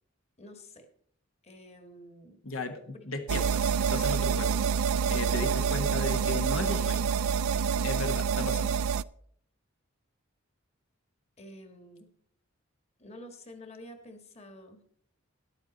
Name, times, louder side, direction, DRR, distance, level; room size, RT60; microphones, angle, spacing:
voice 1, 0.4-0.9 1.4-2.4 2.9-3.1 11.4-12.1 13.0-14.8, left 1 dB, 30° left, 7 dB, 1.6 m, -49 dB
voice 2, 2.4-4.7 5.1-7.1 7.8-8.8, left 2 dB, 80° left, 6 dB, 1.5 m, -36 dB
sound 1, 3.3-9.0, right 6 dB, 85° right, 0.4 m, -27 dB
14.0 x 10.5 x 4.1 m, 0.63 s
head